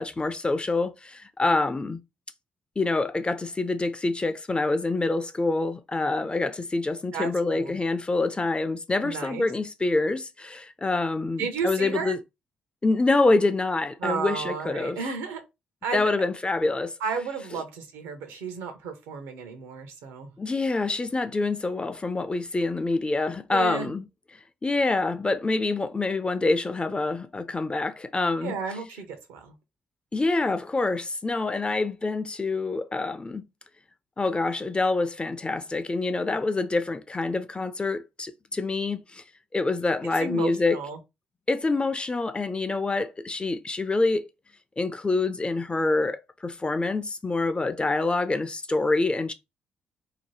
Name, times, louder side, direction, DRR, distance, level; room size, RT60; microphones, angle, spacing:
voice 1, 0.0-2.0 2.8-12.2 12.8-15.0 15.9-17.0 20.4-24.1 24.6-28.5 30.1-33.5 34.2-39.2 39.5-40.8 41.5-44.3 44.8-49.3, left 3 dB, 25° left, 0.5 m, -26 dB
voice 2, 7.1-7.8 9.0-9.5 11.4-12.2 14.0-15.4 15.8-16.1 17.0-20.4 23.5-23.9 28.4-29.5 40.2-41.0, right 5 dB, 75° right, 0.7 m, -33 dB
2.8 x 2.2 x 3.2 m
hypercardioid pair, 45°, 5 cm